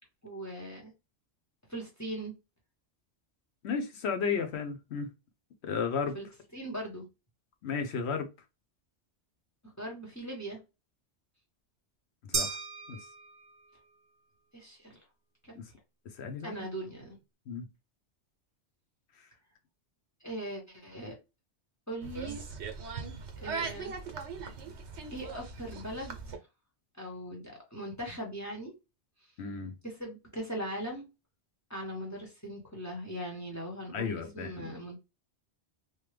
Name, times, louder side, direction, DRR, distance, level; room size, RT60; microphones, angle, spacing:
voice 1, 0.2-0.9 1.7-2.3 6.1-6.3 6.5-7.1 9.6-10.6 14.5-14.9 15.4-15.6 16.4-17.2 20.2-21.2 21.9-22.4 23.4-23.9 25.1-26.4 27.0-28.7 29.8-31.1 31.7-35.0, right 1 dB, 15° left, 0.9 m, -40 dB
voice 2, 3.6-5.1 5.6-6.2 7.6-8.3 12.2-12.6 12.9-13.0 15.6-15.7 16.2-16.6 17.5-17.7 29.4-29.8 33.9-34.7, left 5 dB, 70° left, 0.9 m, -33 dB
sound 1, 12.3-13.8, right 5 dB, 50° right, 0.5 m, -35 dB
sound 2, 22.0-26.4, right 5 dB, 80° right, 1.0 m, -40 dB
3.1 x 2.1 x 3.2 m
omnidirectional pair, 1.2 m